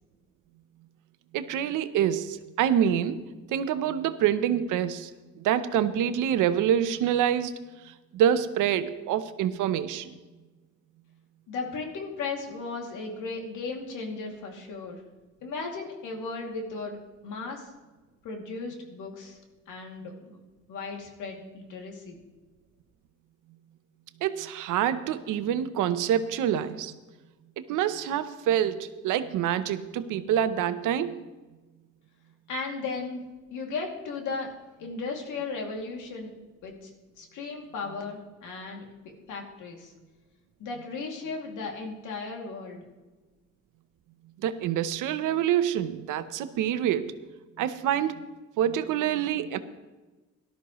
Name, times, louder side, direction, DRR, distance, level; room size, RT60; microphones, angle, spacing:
voice 1, 1.3-3.2 3.5-5.1 5.4-7.5 8.1-10.1 24.2-26.9 27.7-31.2 44.4-47.1 47.6-48.2 48.6-49.6, right 10 dB, 90° right, 12 dB, 0.8 m, -26 dB
voice 2, 11.5-15.0 15.4-17.0 17.2-17.7 18.2-19.4 19.7-20.4 20.7-22.2 32.5-33.2 33.5-34.5 34.8-36.3 36.6-36.9 37.2-38.9 39.3-39.9 40.6-42.8, left 4 dB, 85° left, 1 dB, 2.6 m, -36 dB
18.0 x 12.5 x 3.1 m, 1.2 s
cardioid pair, 90°, 30 cm